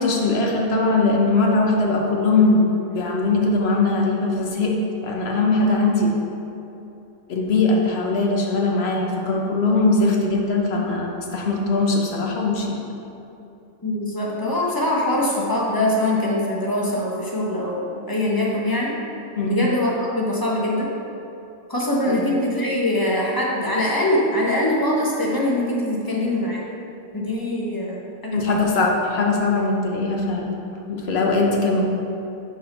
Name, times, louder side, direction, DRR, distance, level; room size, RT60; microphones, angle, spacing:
voice 1, 0.0-6.1 7.3-12.8 19.4-19.6 22.1-22.2 28.3-30.5 30.9-31.8, left 3 dB, 50° left, 0 dB, 1.0 m, -20 dB
voice 2, 13.8-18.9 19.5-20.9 21.7-26.6 27.1-28.8, left 1 dB, 20° left, -4 dB, 0.8 m, -23 dB
6.1 x 4.7 x 5.3 m, 2.8 s
omnidirectional pair, 1.5 m